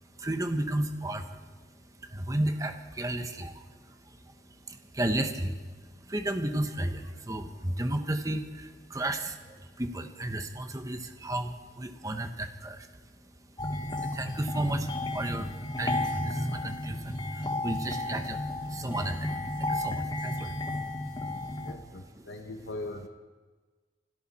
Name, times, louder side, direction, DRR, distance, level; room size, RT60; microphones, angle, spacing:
voice 1, 0.0-21.7 22.2-22.3, right 1 dB, 20° right, 7 dB, 1.0 m, -34 dB
sound 1, 13.6-21.7, left 2 dB, 25° left, 1.0 m, -33 dB
voice 2, 21.6-23.1, left 2 dB, 80° left, 4 dB, 1.1 m, -40 dB
26.5 x 13.0 x 4.3 m, 1.4 s
head